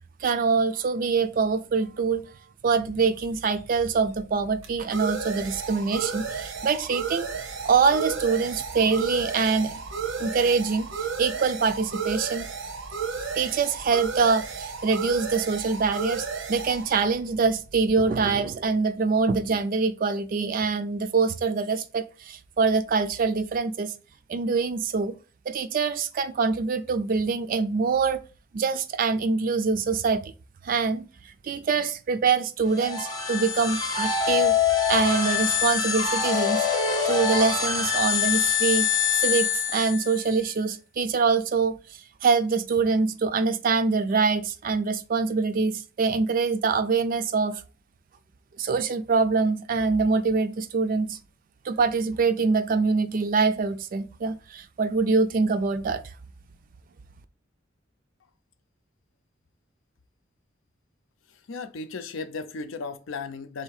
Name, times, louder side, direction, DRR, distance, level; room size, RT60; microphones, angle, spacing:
voice 1, 0.2-2.3 2.6-7.3 7.6-9.8 10.2-10.9 11.2-12.5 13.3-23.9 24.3-25.2 25.5-28.2 28.5-30.3 30.6-34.6 34.9-36.7 37.0-38.9 39.2-41.7 42.2-47.6 48.6-51.2 51.6-56.0, right 4 dB, 45° right, 0.3 m, -24 dB
sound 1, 3.0-18.4, right 5 dB, 90° right, 0.8 m, -34 dB
sound 2, 32.7-40.3, left 7 dB, 20° left, 0.8 m, -25 dB
voice 2, 61.5-63.6, left 4 dB, 85° left, 0.5 m, -35 dB
3.5 x 2.7 x 4.7 m
head